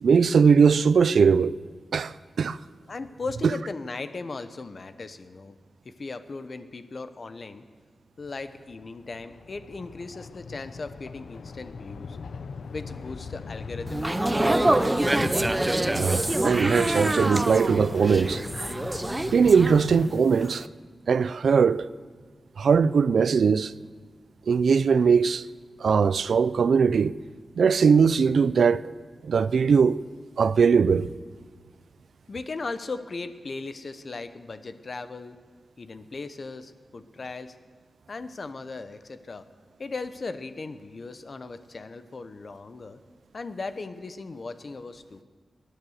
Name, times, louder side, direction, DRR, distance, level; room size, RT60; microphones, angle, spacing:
voice 1, 0.0-1.5 1.9-2.6 15.9-18.4 19.3-20.6 21.1-21.9 22.6-23.7 24.5-25.4 25.8-27.2 27.6-28.8 29.2-30.0 30.4-31.1, right 6 dB, 85° right, 0.4 m, -20 dB
voice 2, 2.9-5.6 5.8-7.6 8.2-12.2 12.7-14.6 32.3-35.4 35.8-37.5 38.1-39.5 39.8-43.0 43.3-45.2, left 3 dB, 50° left, 0.9 m, -37 dB
sound 1, 8.2-20.1, left 5 dB, 85° left, 0.6 m, -39 dB
sound 2, 13.9-20.1 20.4-20.7, right 1 dB, 15° right, 0.6 m, -26 dB
19.5 x 11.5 x 6.5 m
wide cardioid pair, 100°, 0 cm